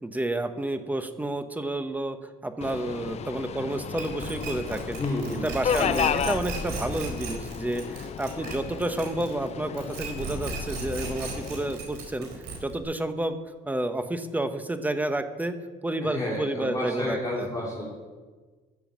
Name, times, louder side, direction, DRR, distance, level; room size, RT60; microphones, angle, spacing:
voice 1, 0.0-5.0 5.4-12.3 12.6-13.4 13.7-15.5 15.8-17.5, right 1 dB, 10° right, 9 dB, 1.0 m, -30 dB
Subway metro underground, 2.6-11.8, left 9 dB, 40° left, 0.4 m, -33 dB
sound 1, 4.0-9.5 9.7-12.8, right 3 dB, 80° right, 4.3 m, -35 dB
voice 2, 5.0-5.5 5.8-6.0 16.0-17.9, left 1 dB, 20° left, -5 dB, 2.7 m, -31 dB
13.5 x 7.0 x 7.3 m, 1.4 s
cardioid pair, 110°, 17 cm